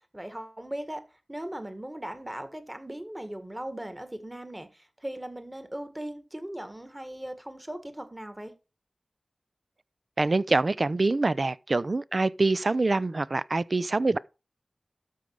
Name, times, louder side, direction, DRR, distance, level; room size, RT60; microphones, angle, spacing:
voice 1, 0.1-8.5, right 1 dB, 15° right, 1.8 m, -38 dB
voice 2, 10.2-14.2, right 3 dB, 55° right, 0.5 m, -25 dB
13.0 x 5.2 x 4.7 m
wide cardioid pair, 55°, 0 cm